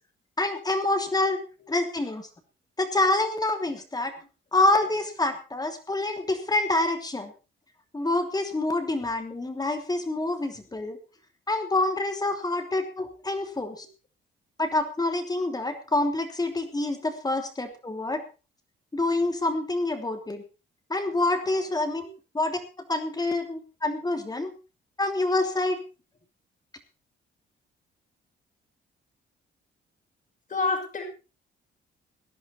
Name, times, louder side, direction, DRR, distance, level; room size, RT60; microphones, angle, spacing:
voice 1, 0.4-1.4 1.7-2.3 2.8-4.1 4.5-7.3 7.9-11.0 11.5-13.8 14.6-18.2 18.9-20.4 20.9-22.0 22.3-22.6 22.9-24.5 25.0-25.8, left 2 dB, 20° left, 6 dB, 3.1 m, -27 dB
voice 2, 30.5-31.0, left 3 dB, 40° left, 4 dB, 5.8 m, -28 dB
18.5 x 11.0 x 4.2 m, 0.31 s
cardioid pair, 90°, 20 cm